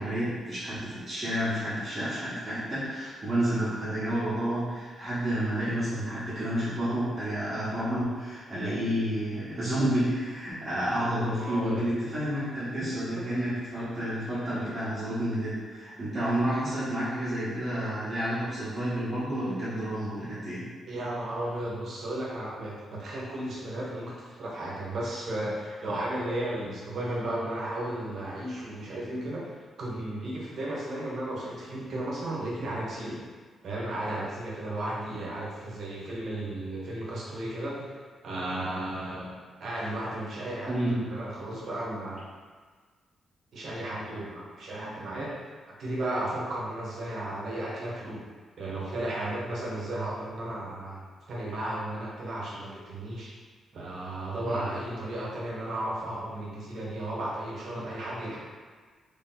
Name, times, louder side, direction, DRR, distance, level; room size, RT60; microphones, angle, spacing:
voice 1, 0.0-20.6 26.6-26.7 40.7-41.0 54.4-54.7, equal, 25° right, -13 dB, 1.1 m, -30 dB
voice 2, 11.4-11.8 12.8-12.9 20.9-33.2 33.6-37.9 38.2-39.3 39.6-42.3 43.5-45.4 45.7-48.3 48.6-53.3 53.7-58.4, right 1 dB, 55° right, -5 dB, 1.0 m, -34 dB
3.3 x 2.8 x 3.8 m, 1.5 s
wide cardioid pair, 160°, 0 cm